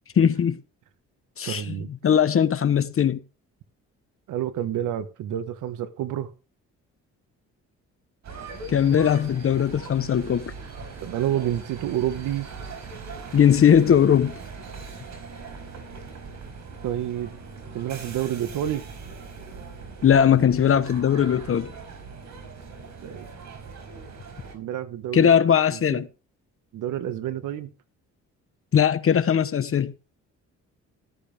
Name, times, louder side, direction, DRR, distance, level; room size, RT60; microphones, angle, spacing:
voice 1, 0.2-0.6 1.4-1.7 2.0-3.2 8.7-10.5 13.3-14.4 20.0-21.7 25.1-26.1 28.7-29.9, left 8 dB, 45° left, 1.1 m, -19 dB
voice 2, 1.4-1.9 4.3-6.3 11.0-12.5 16.8-17.4 17.7-18.9 23.0-23.3 24.5-25.3 25.7-26.0 26.7-27.7, right 11 dB, 85° right, 1.6 m, -29 dB
sound 1, 8.2-24.5, right 4 dB, 65° right, 4.9 m, -40 dB
14.5 x 13.0 x 3.5 m
cardioid pair, 90°, 30 cm